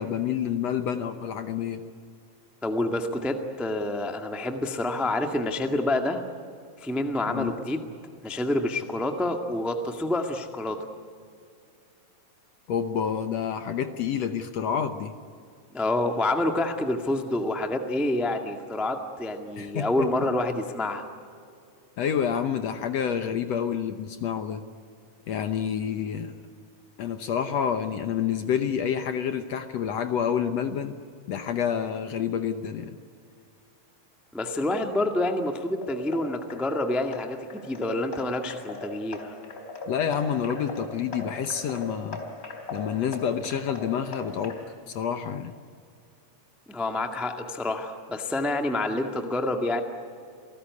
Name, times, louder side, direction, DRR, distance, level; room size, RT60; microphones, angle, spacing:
voice 1, 0.0-1.8 7.3-7.6 12.7-15.1 19.6-20.1 22.0-24.6 25.3-26.3 27.0-31.0 31.3-33.0 39.9-42.2 42.7-44.6 44.9-45.6, left 8 dB, 65° left, 8 dB, 1.8 m, -28 dB
voice 2, 2.6-6.2 6.8-7.9 8.2-10.8 15.7-21.0 34.3-39.3 46.7-49.8, left 1 dB, ahead, 4 dB, 0.8 m, -28 dB
musical drips stylised, 35.6-44.6, left 3 dB, 25° left, 3.6 m, -40 dB
28.5 x 19.0 x 9.6 m, 2.3 s
omnidirectional pair, 3.8 m